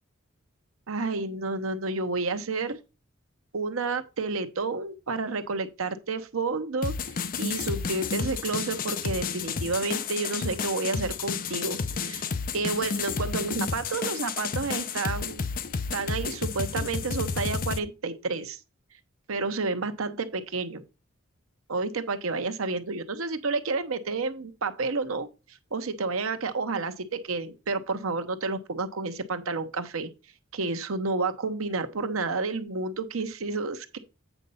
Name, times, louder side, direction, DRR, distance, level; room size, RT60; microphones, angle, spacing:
voice 1, 0.9-2.8 3.5-6.9 7.4-12.2 12.5-15.4 15.9-18.6 19.3-20.8 21.7-25.3 25.7-30.1 30.5-34.0, right 3 dB, 80° right, 0.9 m, -30 dB
sound 1, 6.8-17.8, left 5 dB, 40° left, 0.6 m, -31 dB
8.2 x 4.1 x 5.5 m
head